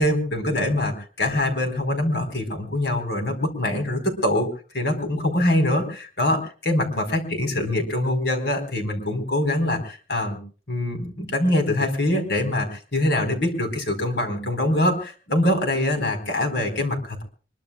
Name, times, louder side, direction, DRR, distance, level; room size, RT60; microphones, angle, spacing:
voice 1, 0.0-4.5 4.7-10.4 10.7-17.2, left 1 dB, 65° left, 6 dB, 4.4 m, -24 dB
24.5 x 22.5 x 2.4 m, 0.37 s
head